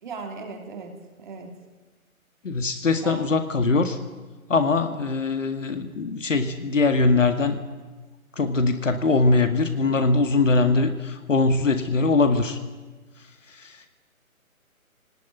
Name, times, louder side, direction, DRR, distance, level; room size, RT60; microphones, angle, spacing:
voice 1, 0.0-0.9 1.2-1.5 3.0-3.4, right 4 dB, 35° right, 3 dB, 3.1 m, -37 dB
voice 2, 2.4-4.0 4.5-7.6 8.3-12.6 13.5-14.0, left 3 dB, 60° left, 7 dB, 2.1 m, -22 dB
24.5 x 19.0 x 9.3 m, 1.3 s
figure-of-eight pair, 155°, 42 cm